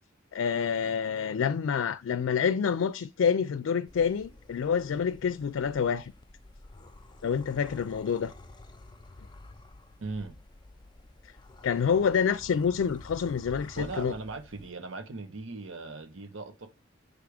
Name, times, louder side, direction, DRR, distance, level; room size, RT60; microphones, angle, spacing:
voice 1, 0.3-6.1 7.2-8.3 11.6-14.1, left 6 dB, 80° left, 0.4 m, -27 dB
sound 1, 3.9-14.7, left 2 dB, 25° left, 0.6 m, -50 dB
voice 2, 10.0-10.4 13.8-16.7, right 3 dB, 90° right, 1.0 m, -39 dB
6.5 x 3.5 x 4.9 m
head